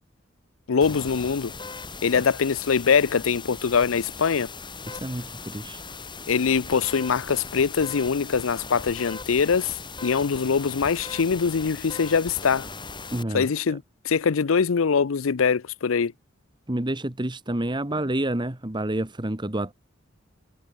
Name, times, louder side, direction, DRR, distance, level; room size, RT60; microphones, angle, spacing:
voice 1, 0.7-1.5 2.0-4.5 6.3-9.7 10.0-12.7 13.3-16.1, left 6 dB, 90° left, 0.6 m, -23 dB
sound 1, 0.8-13.2, left 4 dB, 25° left, 4.2 m, -39 dB
voice 2, 4.9-5.8 13.1-13.8 16.7-19.7, right 1 dB, 25° right, 1.5 m, -29 dB
head